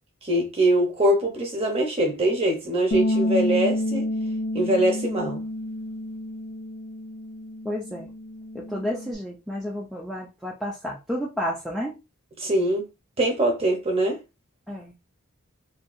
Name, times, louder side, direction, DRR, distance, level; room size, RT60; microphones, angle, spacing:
voice 1, 0.2-4.1 4.5-5.4 12.4-12.9 13.2-14.2, right 1 dB, 30° right, 0.8 m, -23 dB
Bass guitar, 2.9-9.2, left 1 dB, 80° left, 0.5 m, -29 dB
voice 2, 7.6-8.1 8.5-12.0 14.7-14.9, equal, ahead, 0.4 m, -31 dB
2.7 x 2.3 x 2.4 m
head